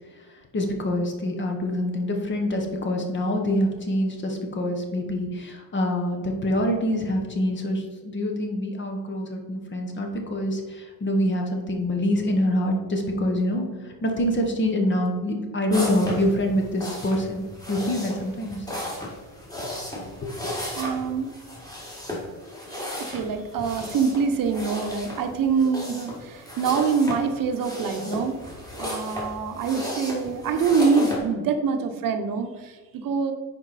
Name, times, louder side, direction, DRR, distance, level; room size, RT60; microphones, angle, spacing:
voice 1, 0.5-18.6 19.6-19.8, left 1 dB, 30° left, 3 dB, 1.1 m, -25 dB
sound 1, 15.7-31.2, left 1 dB, 10° left, 2.0 m, -35 dB
voice 2, 20.8-21.3 22.7-28.4 28.8-33.3, right 5 dB, 70° right, 6 dB, 0.9 m, -25 dB
10.0 x 4.5 x 4.1 m, 1.4 s
cardioid pair, 175°, 35 cm